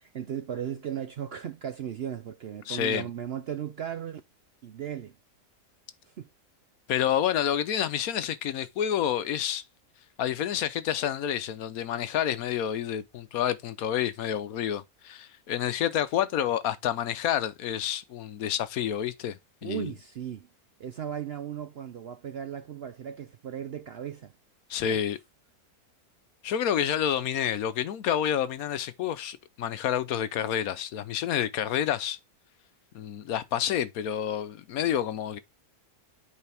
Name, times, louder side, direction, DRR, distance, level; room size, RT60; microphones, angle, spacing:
voice 1, 0.0-4.2 4.6-5.1 6.2-6.3 19.6-20.5 20.8-24.3 24.8-25.1, right 9 dB, 65° right, 0.6 m, -36 dB
voice 2, 2.7-3.1 6.9-9.6 10.2-19.9 24.7-25.2 26.4-32.2 32.9-35.4, left 10 dB, 75° left, 1.1 m, -29 dB
8.3 x 4.9 x 3.4 m
omnidirectional pair, 1.6 m